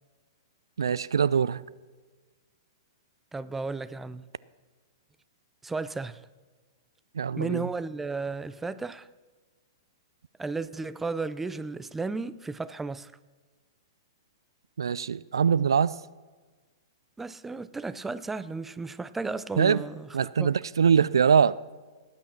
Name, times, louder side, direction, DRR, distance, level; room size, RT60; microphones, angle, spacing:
voice 1, 0.8-1.6 7.2-7.6 14.8-15.9 19.6-19.8 20.1-21.6, right 7 dB, 80° right, 0.4 m, -23 dB
voice 2, 3.3-4.2 5.6-6.2 7.4-9.1 10.4-13.1 17.2-20.1 20.4-20.5, right 3 dB, 10° right, 0.5 m, -34 dB
18.0 x 8.9 x 5.9 m
hypercardioid pair, 115°, 2 cm